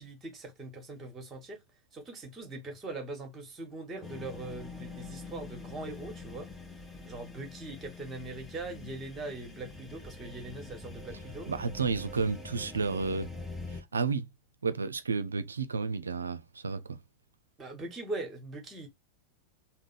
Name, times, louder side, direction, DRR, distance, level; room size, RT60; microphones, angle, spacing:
voice 1, 0.0-1.6 1.9-6.5 7.0-11.5 17.6-18.9, right 2 dB, 20° right, 1.3 m, -41 dB
sound 1, 4.0-13.8, left 3 dB, 10° left, 0.8 m, -44 dB
voice 2, 11.5-13.3 13.7-14.3 14.6-17.0, right 4 dB, 75° right, 0.4 m, -31 dB
3.6 x 2.1 x 4.0 m
figure-of-eight pair, 90°, 0 cm